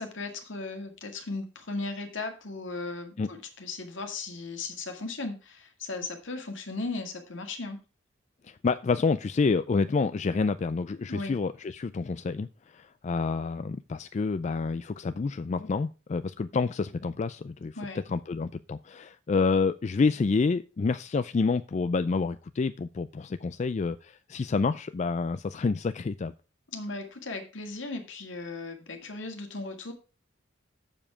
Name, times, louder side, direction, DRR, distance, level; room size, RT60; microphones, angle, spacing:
voice 1, 0.0-7.8 11.1-11.3 17.8-18.0 26.7-29.9, left 3 dB, 75° left, 1.9 m, -36 dB
voice 2, 8.4-26.3, left 4 dB, 35° left, 0.3 m, -28 dB
7.5 x 7.2 x 4.8 m
head